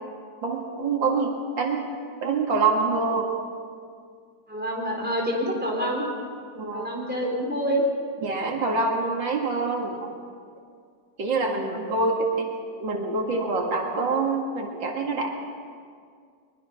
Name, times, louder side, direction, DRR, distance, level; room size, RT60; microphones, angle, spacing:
voice 1, 0.4-1.9 2.2-3.4 6.5-6.9 8.2-10.1 11.2-12.5 12.8-15.3, right 3 dB, 90° right, 1 dB, 2.9 m, -26 dB
voice 2, 4.5-6.1 6.7-7.8 11.6-12.0, equal, 5° right, -2 dB, 4.3 m, -27 dB
22.5 x 22.5 x 5.6 m, 2.1 s
omnidirectional pair, 2.0 m